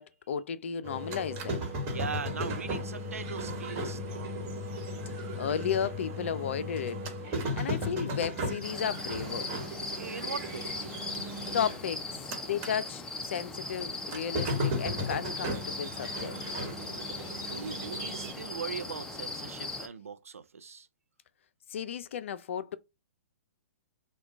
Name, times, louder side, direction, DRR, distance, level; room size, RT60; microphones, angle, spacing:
voice 1, 0.0-1.7 5.4-7.0 7.6-9.5 11.5-12.0 12.5-16.6 21.7-22.8, left 8 dB, 60° left, 0.4 m, -34 dB
sound 1, 0.8-12.8 13.1-18.3, equal, 30° right, 1.2 m, -36 dB
voice 2, 1.9-4.6 10.0-10.7 17.4-20.9, right 6 dB, 80° right, 0.5 m, -40 dB
sound 2, 8.6-19.9, left 3 dB, 10° left, 0.5 m, -39 dB
3.7 x 2.3 x 4.4 m
figure-of-eight pair, 120°, 8 cm